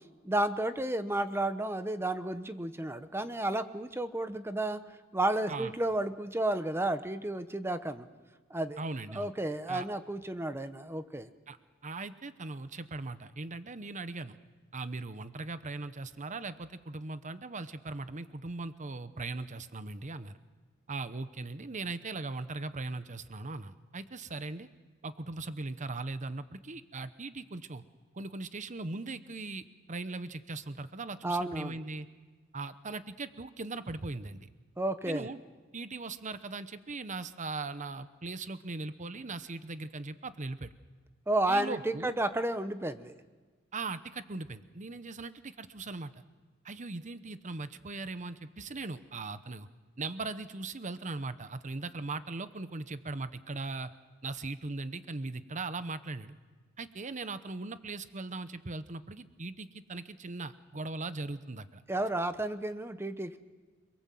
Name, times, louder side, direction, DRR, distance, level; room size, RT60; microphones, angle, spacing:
voice 1, 0.2-4.8 5.1-8.1 8.5-8.8 9.1-11.3 31.2-31.8 34.8-35.3 41.3-43.1 61.9-63.4, right 1 dB, 10° right, 10 dB, 0.9 m, -32 dB
voice 2, 8.8-9.3 9.7-9.9 11.5-11.6 11.8-14.3 14.7-20.4 20.9-24.7 25.0-27.8 28.1-32.1 32.5-34.5 35.1-35.4 35.7-40.7 41.5-42.1 43.7-46.2 46.6-49.7 50.0-53.9 54.2-56.3 56.8-61.8, right 3 dB, 35° right, 12 dB, 1.0 m, -39 dB
28.5 x 22.5 x 7.7 m, 1.4 s
head